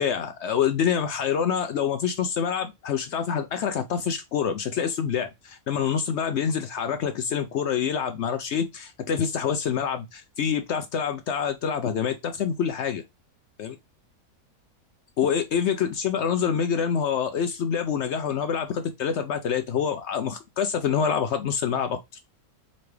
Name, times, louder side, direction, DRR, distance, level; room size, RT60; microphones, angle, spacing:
voice 1, 0.0-13.0 13.6-13.8 15.2-22.0, left 7 dB, 70° left, 0.7 m, -26 dB
3.9 x 3.3 x 3.2 m
omnidirectional pair, 1.6 m